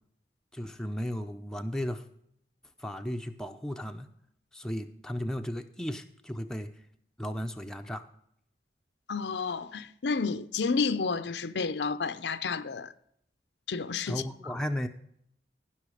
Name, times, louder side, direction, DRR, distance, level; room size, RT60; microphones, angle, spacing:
voice 1, 0.5-2.0 2.8-4.1 4.5-6.7 7.2-8.1 14.1-14.9, equal, 5° left, 0.6 m, -35 dB
voice 2, 9.1-12.9 13.7-14.2, left 4 dB, 85° left, 0.6 m, -30 dB
15.5 x 6.1 x 4.9 m
head